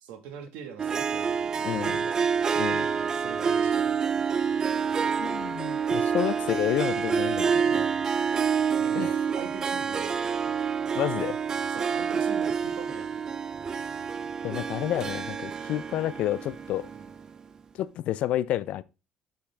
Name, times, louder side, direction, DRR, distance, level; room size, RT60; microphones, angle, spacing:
voice 1, 0.0-2.2 2.8-4.0 7.7-8.1 8.8-10.4 11.7-13.1 16.9-17.1, right 7 dB, 90° right, 1.4 m, -43 dB
Harp, 0.8-17.3, right 6 dB, 25° right, 0.3 m, -28 dB
voice 2, 1.6-2.0 2.6-2.9 5.2-7.8 9.0-9.1 10.9-11.4 14.4-16.9 17.7-18.8, left 13 dB, 60° left, 0.4 m, -30 dB
6.5 x 5.7 x 3.3 m
cardioid pair, 160°, 2 cm